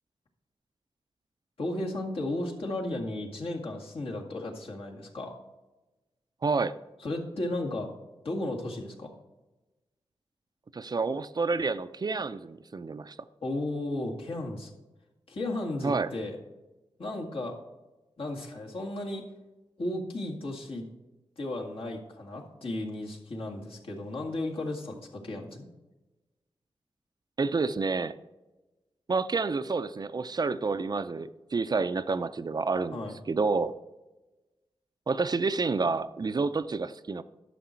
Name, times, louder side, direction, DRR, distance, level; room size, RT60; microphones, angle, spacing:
voice 1, 1.6-5.3 7.0-7.9 8.2-9.1 13.4-14.7 15.3-16.4 17.0-17.6 18.2-19.2 19.8-20.9 21.4-25.7 32.9-33.2, left 1 dB, 65° left, -1 dB, 2.0 m, -34 dB
voice 2, 6.4-6.7 10.7-13.2 15.8-16.1 27.4-28.1 29.1-33.0 33.3-33.7 35.1-37.2, right 4 dB, 40° right, 12 dB, 0.5 m, -29 dB
11.5 x 6.4 x 4.5 m, 1.1 s
wide cardioid pair, 85°, 10 cm